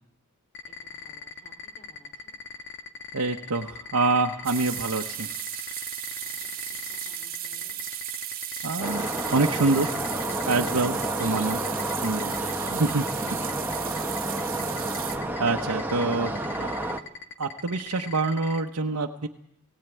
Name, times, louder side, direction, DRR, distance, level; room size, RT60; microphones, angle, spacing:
sound 1, 0.5-18.6, left 6 dB, 55° left, 1.7 m, -40 dB
voice 1, 0.7-2.4 6.2-6.3 6.7-7.8 12.6-12.8 17.4-17.8, equal, 30° left, 1 dB, 5.1 m, -58 dB
voice 2, 3.1-5.3 8.6-9.9 10.5-11.6 12.0-12.3 12.7-13.0 13.3-13.4 15.1-16.7 17.4-19.3, right 3 dB, 80° right, 2 dB, 1.0 m, -26 dB
sound 2, 4.4-15.2, right 10 dB, 40° right, 1.8 m, -35 dB
sound 3, 8.8-17.0, right 1 dB, 10° right, 1.1 m, -30 dB
19.0 x 17.5 x 9.2 m, 0.76 s
head